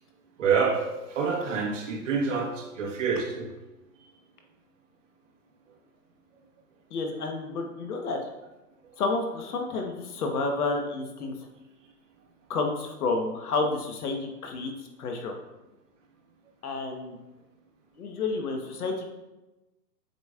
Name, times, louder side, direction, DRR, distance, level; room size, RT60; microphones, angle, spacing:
voice 1, 0.4-3.5, right 5 dB, 50° right, -1 dB, 1.3 m, -27 dB
voice 2, 6.9-8.2 9.0-11.3 12.5-14.7 15.0-15.3 16.6-17.2 18.0-19.0, left 3 dB, 65° left, 3 dB, 1.2 m, -30 dB
8.0 x 5.0 x 2.4 m, 1.0 s
hypercardioid pair, 165°, 49 cm